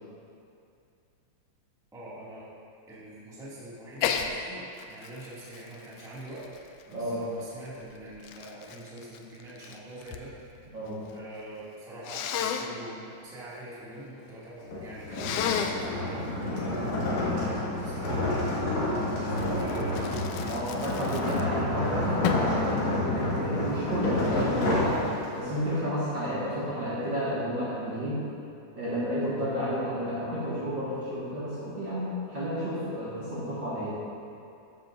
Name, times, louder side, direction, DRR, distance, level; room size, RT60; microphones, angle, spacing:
voice 1, 1.9-2.5 2.9-6.5 6.9-10.3 10.6-10.8 11.1-16.9 17.4-18.4 18.9-20.0, right 1 dB, ahead, -10 dB, 1.7 m, -44 dB
Sneeze, 4.0-4.3 4.8-7.1 7.8-10.3 10.6-11.2 12.0-12.7 15.1-15.9 19.4-21.7 22.2-22.6, left 8 dB, 80° left, 2.0 m, -33 dB
voice 2, 6.9-7.2 10.7-11.0 20.5-25.1 25.4-28.2 28.7-34.0, equal, 40° right, -10 dB, 2.2 m, -31 dB
sound 1, 14.6-25.6, left 1 dB, 65° left, 3.0 m, -29 dB
14.0 x 9.4 x 2.7 m, 2.5 s
omnidirectional pair, 3.6 m